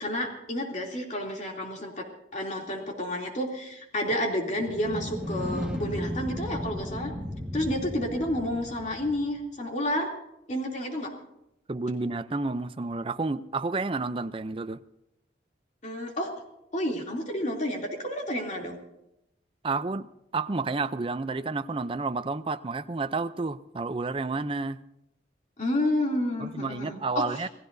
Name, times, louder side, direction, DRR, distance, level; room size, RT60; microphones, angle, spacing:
voice 1, 0.0-2.1 2.3-7.1 7.5-10.1 10.5-11.1 15.8-16.3 16.7-18.8 25.6-27.5, left 1 dB, 40° left, 2.9 m, -30 dB
sound 1, 4.5-9.4, left 1 dB, 5° right, 1.5 m, -35 dB
voice 2, 11.7-14.8 19.6-20.1 20.3-24.8 26.4-27.5, right 3 dB, 30° right, 0.5 m, -30 dB
28.0 x 17.0 x 2.7 m
head